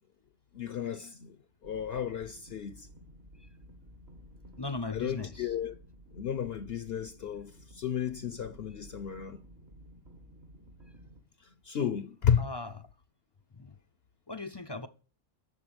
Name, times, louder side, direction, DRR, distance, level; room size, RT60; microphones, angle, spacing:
voice 1, 0.5-1.4 1.6-2.9 4.9-5.7 6.1-9.4 11.6-12.5, left 8 dB, 55° left, 0.9 m, -33 dB
sound 1, 1.6-11.2, equal, 55° right, 2.1 m, -53 dB
voice 2, 4.6-5.5 8.7-8.8 11.7-11.9 12.4-12.9 13.5-13.8 14.3-14.9, left 3 dB, 30° left, 0.5 m, -38 dB
11.0 x 7.1 x 8.8 m
omnidirectional pair, 1.3 m